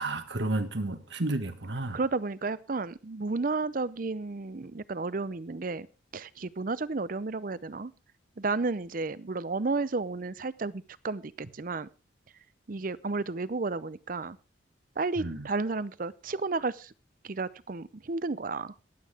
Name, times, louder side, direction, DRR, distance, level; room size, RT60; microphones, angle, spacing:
voice 1, 0.0-2.0 15.2-15.4, right 2 dB, 70° right, 1.5 m, -31 dB
voice 2, 1.9-5.9 6.1-7.9 8.4-11.9 12.7-14.4 15.0-16.9 17.2-18.7, right 3 dB, 45° right, 0.6 m, -32 dB
22.0 x 8.7 x 3.6 m
head